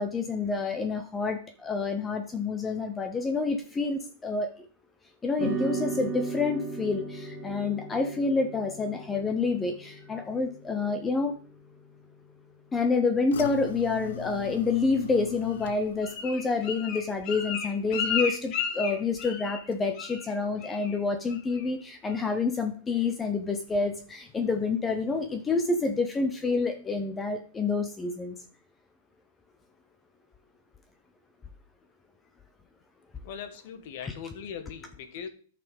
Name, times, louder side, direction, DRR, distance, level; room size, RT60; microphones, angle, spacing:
voice 1, 0.0-4.7 5.2-11.4 12.7-28.4 34.0-34.1, left 4 dB, 10° left, 0.8 m, -28 dB
sound 1, 5.4-13.9, right 4 dB, 30° right, 3.1 m, -38 dB
sound 2, 13.3-18.5 18.8-19.3 19.7-19.8, left 8 dB, 75° left, 1.0 m, -41 dB
Bird, 15.6-19.7 20.0-20.3 20.6-21.0 21.3-21.7 22.1-22.2, left 7 dB, 30° left, 2.1 m, -33 dB
voice 2, 33.2-35.3, left 7 dB, 50° left, 1.5 m, -40 dB
10.5 x 5.8 x 5.3 m
supercardioid pair, 160°, 0 cm